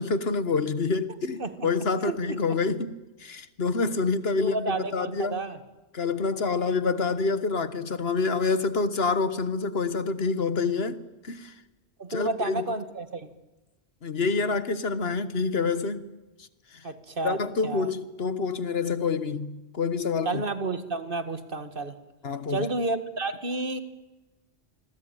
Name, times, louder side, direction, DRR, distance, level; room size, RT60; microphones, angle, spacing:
voice 1, 0.0-2.9 3.2-5.4 5.9-11.0 11.2-11.5 12.1-12.7 14.0-16.0 16.7-16.8 17.2-20.4 22.2-22.7, left 4 dB, 65° left, 1.6 m, -27 dB
voice 2, 2.0-2.6 4.4-5.6 12.0-13.3 16.8-17.9 20.3-22.0 22.5-23.8, right 3 dB, 55° right, 2.0 m, -31 dB
27.5 x 22.0 x 9.2 m
omnidirectional pair, 1.1 m